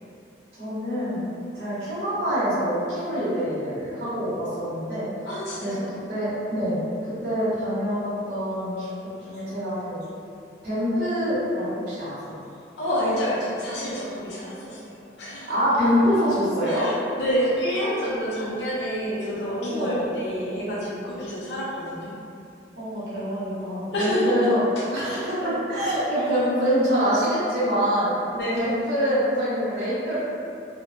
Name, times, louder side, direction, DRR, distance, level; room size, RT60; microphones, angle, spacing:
voice 1, 0.6-1.3 1.5-5.1 5.6-5.8 6.1-10.0 10.6-12.3 15.5-16.9 19.6-20.0 22.8-24.6 24.9-28.1 28.5-30.2, equal, 60° right, -13 dB, 0.9 m, -25 dB
voice 2, 5.3-6.0 12.8-15.6 16.7-22.1 23.9-24.3 25.1-25.6 26.2-26.3 28.3-28.8, equal, 65° left, -7 dB, 0.5 m, -28 dB
3.0 x 2.1 x 2.5 m, 2.6 s
head